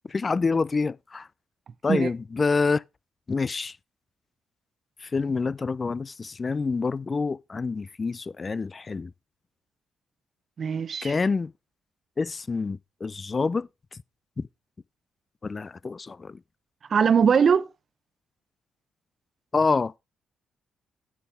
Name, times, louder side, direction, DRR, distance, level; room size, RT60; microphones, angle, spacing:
voice 1, 0.1-1.3 1.8-2.8 3.3-3.8 5.0-9.1 11.0-11.5 12.2-14.0 14.4-14.5 15.4-16.4 19.5-19.9, left 4 dB, 35° left, 0.4 m, -27 dB
voice 2, 10.6-11.1 16.9-17.7, right 6 dB, 50° right, 0.7 m, -21 dB
9.9 x 7.2 x 3.6 m
hypercardioid pair, 45°, 0 cm